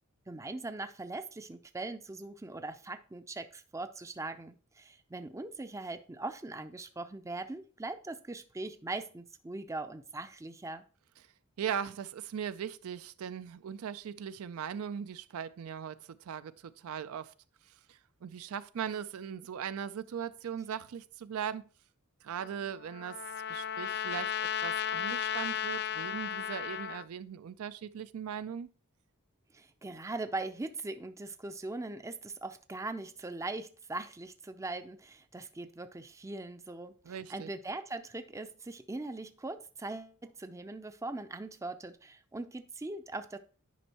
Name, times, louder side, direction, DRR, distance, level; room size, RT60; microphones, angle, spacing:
voice 1, 0.3-10.8 29.5-43.4, right 2 dB, 15° right, 0.4 m, -41 dB
voice 2, 11.6-17.3 17.7-21.6 22.2-23.2 23.5-28.7 37.0-37.5, right 8 dB, 75° right, 0.4 m, -39 dB
Trumpet, 22.4-27.1, left 9 dB, 50° left, 0.3 m, -35 dB
10.0 x 5.3 x 2.9 m
head